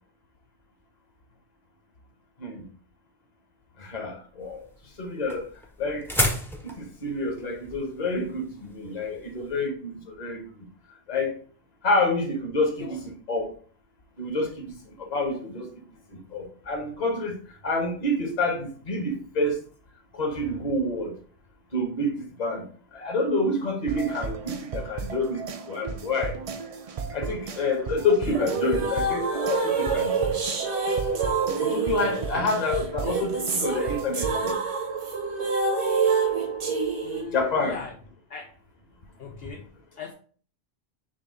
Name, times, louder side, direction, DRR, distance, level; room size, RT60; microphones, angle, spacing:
voice 1, 3.8-4.6 5.0-5.5 5.8-6.1 6.6-10.7 11.1-11.4 11.8-13.5 14.2-15.7 16.1-17.4 17.6-19.6 20.1-21.1 21.7-22.6 22.9-26.4 27.1-30.4 31.6-34.6 37.3-37.8, left 2 dB, 40° left, 1.1 m, -28 dB
sound 1, 4.4-9.6, equal, 5° left, 0.4 m, -32 dB
sound 2, 23.9-34.5, right 5 dB, 60° right, 0.3 m, -35 dB
sound 3, 28.2-37.2, right 4 dB, 80° right, 1.3 m, -27 dB
voice 2, 32.0-32.5 37.0-38.0 38.3-38.5 39.2-40.1, left 6 dB, 70° left, 0.8 m, -40 dB
6.2 x 2.3 x 3.6 m
omnidirectional pair, 1.1 m